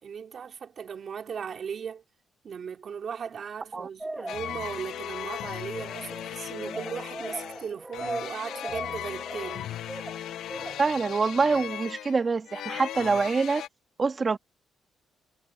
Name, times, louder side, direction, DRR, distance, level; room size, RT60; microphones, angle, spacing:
voice 1, 0.0-2.0 2.4-9.7, right 7 dB, 50° right, 3.8 m, -37 dB
sound 1, 4.0-5.0 5.8-11.0, right 2 dB, 15° right, 2.2 m, -40 dB
sound 2, 4.3-13.7, left 11 dB, 75° left, 0.5 m, -37 dB
voice 2, 10.8-13.6 14.0-14.4, right 4 dB, 35° right, 1.9 m, -25 dB
cardioid pair, 90°, 0 cm